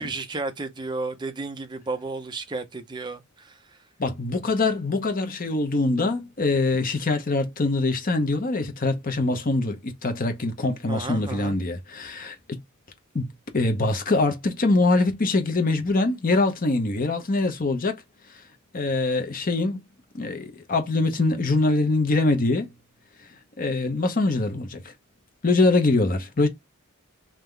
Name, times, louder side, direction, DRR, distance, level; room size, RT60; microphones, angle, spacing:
voice 1, 0.0-3.6 10.9-11.6, right 3 dB, 20° right, 0.6 m, -33 dB
voice 2, 4.0-12.6 13.1-18.0 18.7-19.8 20.1-22.7 23.6-24.9 25.4-26.5, left 2 dB, 40° left, 0.8 m, -23 dB
3.7 x 2.9 x 3.2 m
head